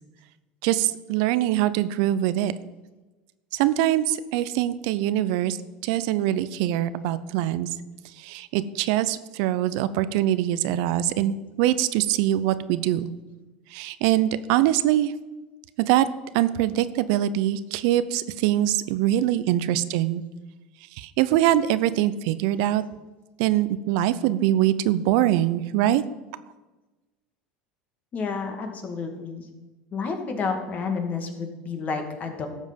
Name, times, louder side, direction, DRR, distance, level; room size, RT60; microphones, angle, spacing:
voice 1, 0.6-2.5 3.5-5.6 5.8-7.7 8.2-13.1 13.7-15.1 15.8-16.1 16.3-20.2 21.0-22.8 23.4-26.0, right 13 dB, 70° right, 15 dB, 0.6 m, -23 dB
voice 2, 28.1-29.5 29.9-32.5, left 5 dB, 40° left, 5 dB, 2.1 m, -30 dB
12.5 x 7.3 x 5.2 m, 1.2 s
hypercardioid pair, 95°, 4 cm